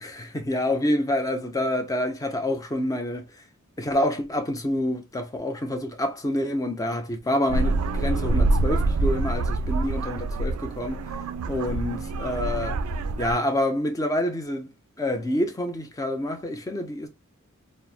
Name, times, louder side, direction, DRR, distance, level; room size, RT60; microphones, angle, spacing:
voice 1, 0.0-3.2 3.8-11.0 11.5-12.8 13.2-14.7 15.0-17.1, left 1 dB, 15° left, 0.5 m, -27 dB
sound 1, 7.5-13.4, right 2 dB, 80° right, 0.3 m, -26 dB
2.9 x 2.0 x 2.3 m
head